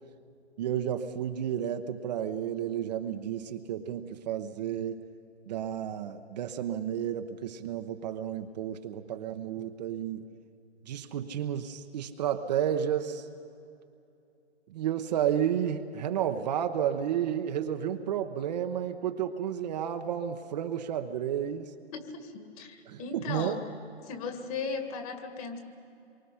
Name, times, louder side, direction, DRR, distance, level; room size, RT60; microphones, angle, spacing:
voice 1, 0.6-5.0 5.5-10.3 10.9-13.3 14.7-21.7 22.9-23.6, right 9 dB, 40° right, 7 dB, 0.9 m, -31 dB
voice 2, 21.9-23.7 24.0-25.6, left 4 dB, 30° left, 6 dB, 2.2 m, -37 dB
26.5 x 23.5 x 5.7 m, 2.6 s
hypercardioid pair, 140°, 34 cm